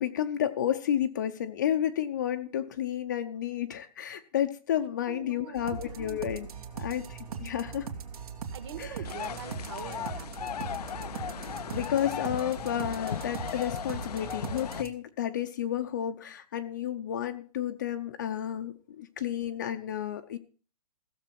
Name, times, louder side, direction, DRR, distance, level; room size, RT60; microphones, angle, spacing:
voice 1, 0.0-6.5 6.8-7.9 8.8-8.9 11.6-20.4, left 10 dB, 30° left, 8 dB, 0.7 m, -31 dB
voice 2, 4.8-6.1 6.4-6.6 7.3-7.5 8.5-11.5 12.0-12.3, right 8 dB, 45° right, 7 dB, 2.3 m, -46 dB
sound 1, 5.6-14.9, right 6 dB, 65° right, 2.5 m, -40 dB
sound 2, 9.0-14.8, left 9 dB, 75° left, 0.6 m, -37 dB
16.0 x 7.3 x 5.9 m, 0.38 s
hypercardioid pair, 170°, 20 cm